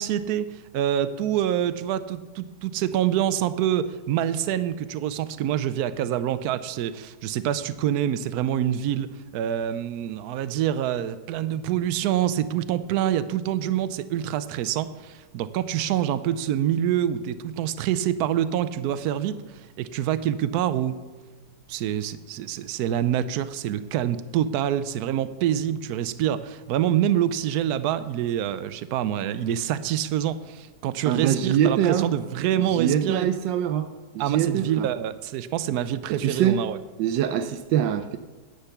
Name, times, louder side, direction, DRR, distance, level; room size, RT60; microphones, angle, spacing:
voice 1, 0.0-9.1 9.3-21.0 21.7-33.3 34.2-36.8, right 11 dB, 70° right, 13 dB, 1.0 m, -26 dB
voice 2, 31.1-32.1 32.7-34.9 36.1-36.6 37.0-38.2, right 10 dB, 90° right, 9 dB, 1.3 m, -24 dB
9.8 x 8.2 x 5.8 m, 1.2 s
omnidirectional pair, 1.9 m